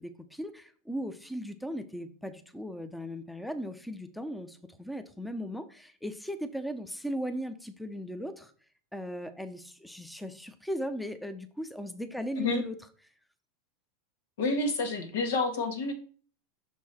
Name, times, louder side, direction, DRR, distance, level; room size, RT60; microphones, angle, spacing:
voice 1, 0.0-8.5 8.9-12.8, equal, ahead, 9 dB, 0.7 m, -37 dB
voice 2, 14.4-15.9, left 3 dB, 80° left, 5 dB, 1.6 m, -29 dB
6.0 x 4.6 x 4.2 m, 0.42 s
hypercardioid pair, 105°, 0 cm